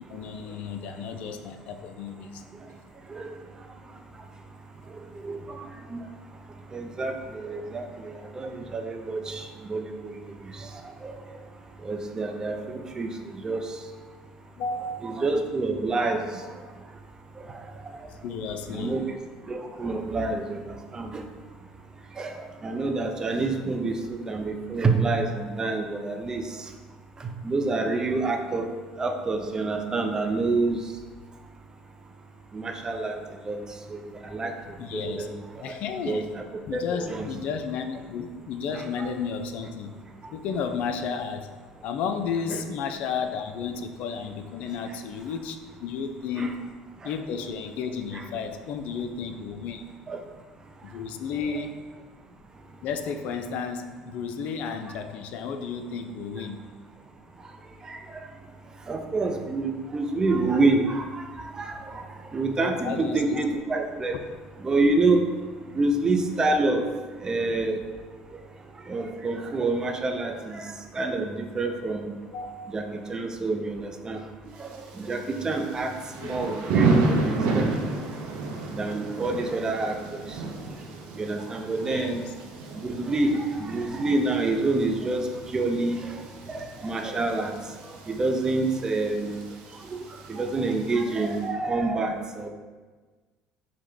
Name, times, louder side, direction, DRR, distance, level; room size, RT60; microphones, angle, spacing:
voice 1, 0.1-2.4 14.6-15.2 18.2-19.0 34.8-35.3 35.6-36.2 36.7-39.9 40.3-41.5 41.8-46.6 47.0-49.8 50.8-51.8 52.8-56.6 62.8-63.6 72.3-72.7 76.2-76.4 81.8-82.3, left 6 dB, 65° left, 7 dB, 0.3 m, -33 dB
voice 2, 5.2-6.0 6.7-7.9 8.4-10.1 11.0-11.1 11.8-13.1 13.4-13.6 15.0-16.2 18.7-19.0 19.5-20.6 20.9-21.2 22.2-22.3 22.6-26.4 27.4-28.7 29.0-30.8 32.5-33.2 33.5-33.6 33.9-34.0 34.3-34.5 34.9-35.3 36.1-36.4 36.7-37.3 38.7-39.1 42.5-42.6 46.4-46.5 50.1-50.2 57.9-58.0 58.9-61.2 61.6-62.0 62.3-64.1 64.6-65.2 65.7-66.8 67.2-67.8 68.9-70.6 70.9-72.1 72.7-72.8 73.1-74.2 74.6-74.7 75.0-75.9 76.2-77.8 78.7-80.2 81.2-82.2 82.8-83.3 83.6-85.3 85.5-86.1 86.5-87.5 88.1-89.4 90.3-92.5, right 3 dB, 25° right, 4 dB, 0.5 m, -27 dB
Thunder / Rain, 74.5-91.4, right 3 dB, 70° right, 0.7 m, -32 dB
4.6 x 2.1 x 3.8 m, 1.4 s
hypercardioid pair, 80°, 3 cm